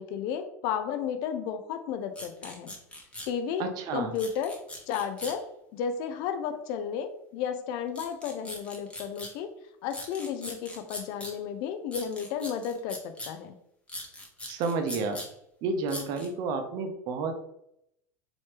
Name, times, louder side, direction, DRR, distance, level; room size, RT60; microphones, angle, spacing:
voice 1, 0.0-2.7 3.3-3.7 3.9-4.6 4.9-5.5 5.7-9.5 9.8-13.6, left 7 dB, 55° left, 8 dB, 0.4 m, -33 dB
percussion guiro, 2.2-3.3 4.2-5.4 8.0-9.3 9.9-11.3 11.9-13.3 13.9-15.3 15.9-16.3, left 1 dB, 10° left, 1.1 m, -40 dB
voice 2, 3.6-4.1 14.4-15.2 15.6-17.3, right 4 dB, 50° right, 6 dB, 0.7 m, -30 dB
4.2 x 3.0 x 3.1 m, 0.78 s
figure-of-eight pair, 80°, 9 cm